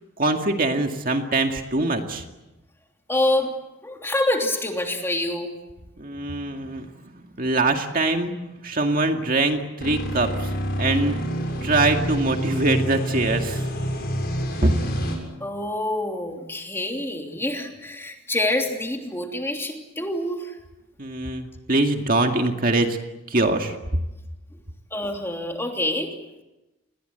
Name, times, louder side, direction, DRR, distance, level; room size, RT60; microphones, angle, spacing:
voice 1, 0.2-2.2 6.0-6.9 7.4-8.4 8.6-10.5 10.8-11.2 11.6-13.7 14.6-14.7 21.0-23.0 23.3-23.8, right 2 dB, 40° right, 4 dB, 2.2 m, -23 dB
voice 2, 3.1-3.5 3.8-5.5 15.4-20.6 24.9-26.1, left 1 dB, 10° left, 2 dB, 3.1 m, -26 dB
sound 1, 9.8-15.2, equal, 50° left, 7.3 m, -27 dB
29.5 x 21.5 x 8.0 m, 1.0 s
head